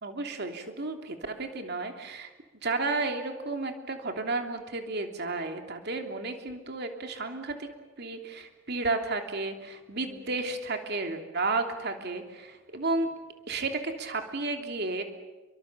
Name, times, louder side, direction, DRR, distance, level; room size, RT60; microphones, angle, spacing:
voice 1, 0.0-2.3 2.6-7.7 8.0-13.1 13.5-15.0, right 3 dB, 55° right, 4 dB, 3.0 m, -32 dB
29.0 x 25.0 x 7.4 m, 1.2 s
head